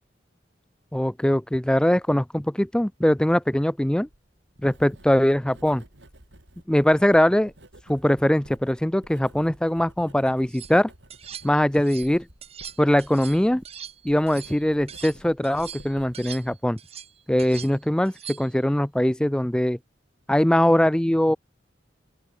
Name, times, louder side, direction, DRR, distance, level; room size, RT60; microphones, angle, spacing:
voice 1, 0.9-4.1 4.6-5.8 6.7-7.5 7.9-10.9 11.4-12.3 12.8-13.6 14.0-16.8 17.3-19.8 20.3-21.4, left 1 dB, 5° left, 0.4 m, -21 dB
Writing, 4.0-16.6, right 1 dB, 75° right, 5.2 m, -52 dB
sound 1, 10.3-10.7 11.1-12.1 12.4-15.2 15.4-18.6, right 9 dB, 35° right, 1.2 m, -42 dB
open air
head